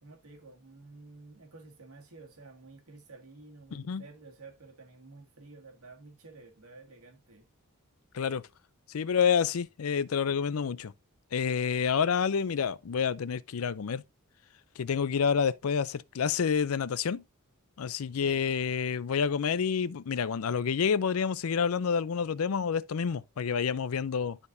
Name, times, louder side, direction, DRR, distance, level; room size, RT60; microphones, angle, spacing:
voice 1, 0.0-7.5 18.1-18.4, right 3 dB, 85° right, 1.9 m, -51 dB
voice 2, 3.7-4.0 8.1-8.4 8.9-10.9 11.3-14.0 14.8-17.2 17.8-24.4, left 6 dB, 75° left, 0.5 m, -28 dB
11.5 x 4.3 x 2.6 m
head